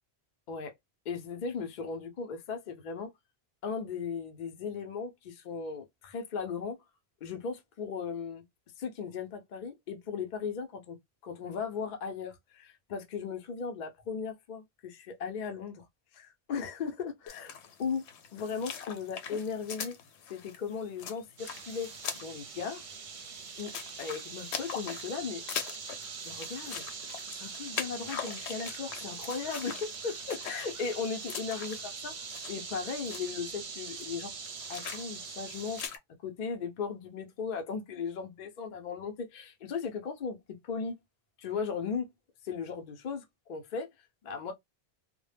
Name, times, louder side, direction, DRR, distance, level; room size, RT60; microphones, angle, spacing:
voice 1, 1.1-3.1 3.6-6.8 7.2-8.4 8.8-11.0 11.2-15.9 16.1-18.0 18.3-20.0 20.3-22.8 23.6-23.7 24.0-25.4 26.2-26.8 27.3-32.1 32.5-34.3 34.7-35.8 36.2-41.0 41.4-42.1 42.4-43.9 44.2-44.5, left 5 dB, 55° left, 0.6 m, -37 dB
sound 1, 17.3-36.0, left 7 dB, 85° left, 0.9 m, -43 dB
sound 2, 21.4-35.9, right 5 dB, 55° right, 0.7 m, -42 dB
2.1 x 2.0 x 3.2 m
omnidirectional pair, 1.1 m